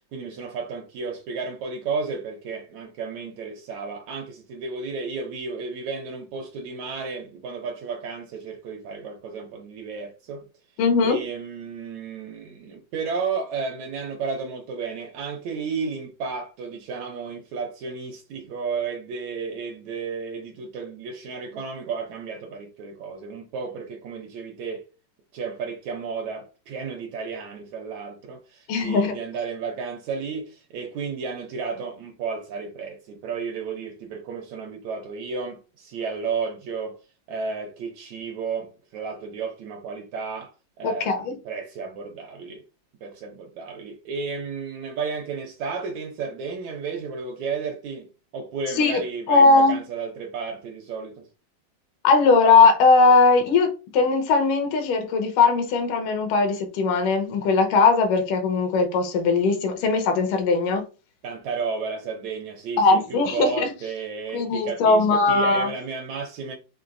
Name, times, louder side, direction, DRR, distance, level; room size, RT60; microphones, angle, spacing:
voice 1, 0.1-10.4 11.0-24.9 25.3-37.0 37.3-42.6 43.0-48.1 48.3-51.3 61.2-66.6, right 5 dB, 75° right, 1.7 m, -33 dB
voice 2, 10.8-11.2 28.7-29.2 40.8-41.3 48.8-49.0 49.3-49.8 52.0-60.8 62.8-63.7 64.3-65.7, left 4 dB, 80° left, 2.5 m, -19 dB
5.9 x 3.5 x 2.6 m
omnidirectional pair, 3.8 m